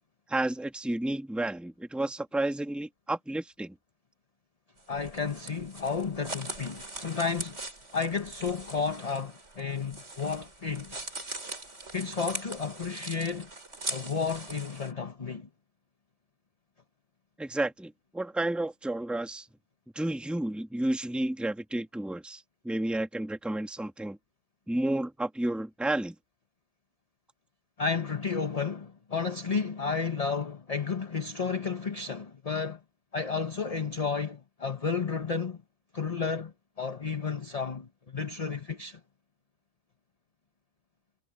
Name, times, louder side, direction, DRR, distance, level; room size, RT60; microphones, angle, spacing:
voice 1, 0.3-3.7 17.4-19.4 19.9-24.2 24.7-26.1, right 1 dB, ahead, 1.5 m, -31 dB
sound 1, 4.8-14.9, right 2 dB, 50° right, 5.0 m, -41 dB
voice 2, 4.9-7.6 7.9-11.1 11.9-13.5 13.9-15.5 27.8-32.8 33.1-35.6 35.9-39.0, left 5 dB, 30° left, 1.0 m, -32 dB
omnidirectional pair, 1.5 m